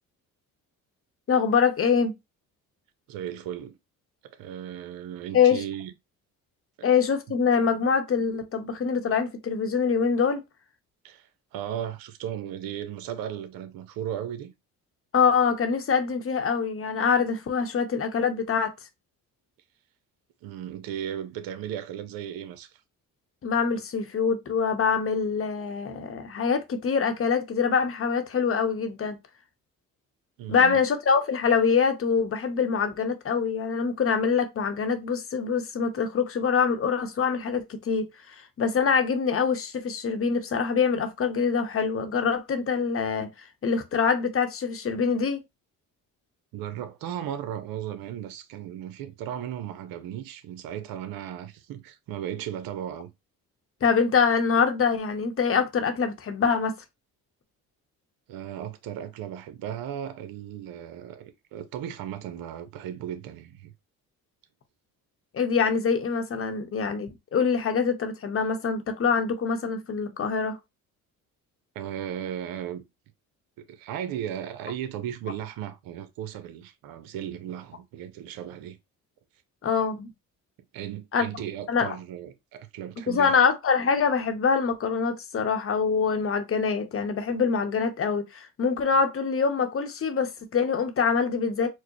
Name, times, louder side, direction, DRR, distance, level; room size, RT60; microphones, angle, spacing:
voice 1, 1.3-2.1 5.3-5.6 6.8-10.4 15.1-18.7 23.4-29.2 30.5-38.1 38.3-43.3 43.6-45.4 53.8-56.8 65.3-70.6 79.6-80.1 81.1-81.3 81.7-81.9 83.1-91.7, left 6 dB, 40° left, 0.8 m, -24 dB
voice 2, 3.1-3.8 4.3-5.9 11.0-14.5 20.4-22.8 30.4-30.8 46.5-53.1 58.3-63.7 71.7-72.8 73.7-78.8 80.7-83.4, right 10 dB, 80° right, 0.6 m, -36 dB
4.4 x 2.1 x 2.9 m
cardioid pair, 85°, 35 cm